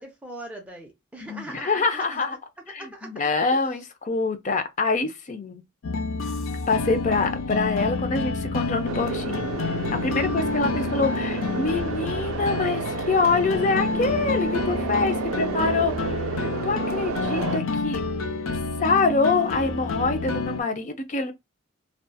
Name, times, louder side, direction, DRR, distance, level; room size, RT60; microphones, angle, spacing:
voice 1, 0.0-2.2 2.7-3.6 10.6-10.8, right 1 dB, 5° right, 0.8 m, -40 dB
voice 2, 1.3-2.4 2.7-5.6 6.7-9.5 9.9-18.0 18.8-21.3, left 4 dB, 35° left, 0.5 m, -25 dB
sound 1, 5.8-20.6, left 4 dB, 85° left, 0.5 m, -29 dB
sound 2, 8.8-17.6, right 6 dB, 85° right, 0.3 m, -31 dB
2.6 x 2.3 x 2.2 m
head